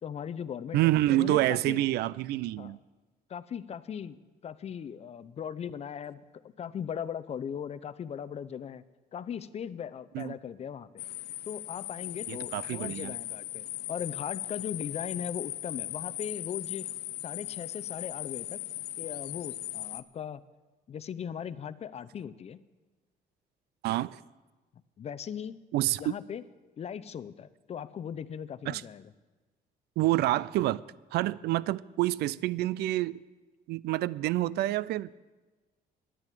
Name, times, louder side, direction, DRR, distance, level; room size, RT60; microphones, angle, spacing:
voice 1, 0.0-1.9 2.6-2.8 3.3-6.3 6.6-8.8 9.1-11.0 11.5-16.9 17.2-18.6 19.0-20.4 20.9-22.6 25.0-25.6 26.0-26.4 26.8-29.1, left 8 dB, 40° left, 0.6 m, -39 dB
voice 2, 0.7-2.8 10.1-10.3 12.3-13.1 23.8-24.2 25.7-26.1 28.7-28.8 30.0-30.8 31.1-33.2 33.7-35.2, right 16 dB, 75° right, 0.4 m, -28 dB
sound 1, 11.0-20.0, left 15 dB, 80° left, 0.6 m, -38 dB
10.5 x 10.0 x 8.5 m
cardioid pair, 110°, 17 cm